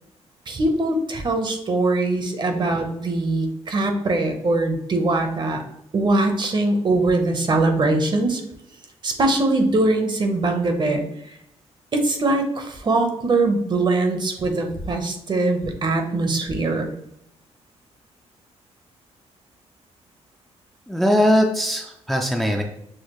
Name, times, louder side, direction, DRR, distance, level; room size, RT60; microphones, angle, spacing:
voice 1, 0.5-5.6 5.9-8.4 9.0-11.4 11.9-16.9, right 2 dB, 40° right, 5 dB, 0.8 m, -22 dB
voice 2, 20.9-22.6, equal, ahead, 1 dB, 0.4 m, -20 dB
6.5 x 2.3 x 3.0 m, 0.79 s
cardioid pair, 100°, 12 cm